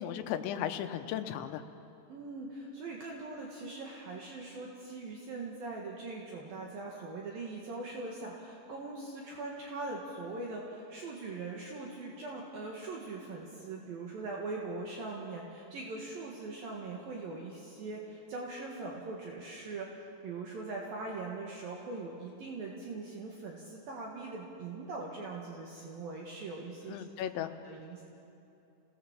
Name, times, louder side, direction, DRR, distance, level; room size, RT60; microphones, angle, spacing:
voice 1, 0.0-1.6 26.9-27.5, left 10 dB, 90° left, 8 dB, 3.2 m, -36 dB
voice 2, 2.1-19.9 20.2-27.0 27.4-28.0, right 3 dB, 60° right, -2 dB, 3.2 m, -41 dB
27.0 x 18.0 x 7.4 m, 3.0 s
omnidirectional pair, 5.2 m